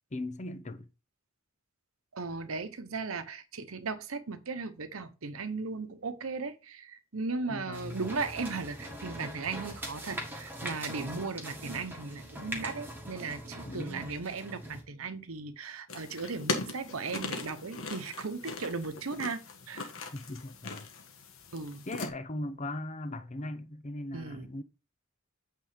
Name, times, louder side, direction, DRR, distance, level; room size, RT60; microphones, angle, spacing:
voice 1, 0.1-0.9 7.5-8.0 13.6-14.1 20.1-20.9 21.9-24.6, left 1 dB, 35° left, 0.7 m, -39 dB
voice 2, 2.1-19.4 19.7-19.9 21.5-21.9 24.1-24.5, right 4 dB, 85° right, 0.9 m, -37 dB
sound 1, 7.7-14.8, right 1 dB, 10° right, 1.7 m, -42 dB
sound 2, 15.9-22.1, left 3 dB, 75° left, 1.4 m, -39 dB
8.6 x 3.8 x 5.1 m
head